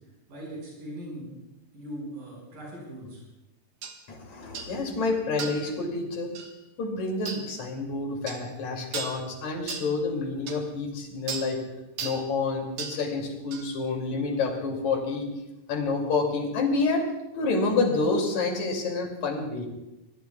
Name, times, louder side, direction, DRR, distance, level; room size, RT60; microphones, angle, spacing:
voice 1, 0.3-1.3 1.7-3.2, right 1 dB, 85° right, -4 dB, 7.4 m, -39 dB
sound 1, 3.8-4.0 4.5-4.7 5.4-5.7 6.3-6.5 7.2-7.4 8.3-8.4 8.9-9.2 9.7-9.9 10.5-10.6 11.3-11.5 12.0-12.2 12.8-13.0 13.5-13.7, right 5 dB, 60° right, 2.4 m, -35 dB
voice 2, 4.1-6.3 6.8-11.6 12.0-15.3 15.7-17.1 17.3-19.7, left 3 dB, 60° left, 2 dB, 3.8 m, -28 dB
25.5 x 20.0 x 2.3 m, 0.96 s
omnidirectional pair, 3.8 m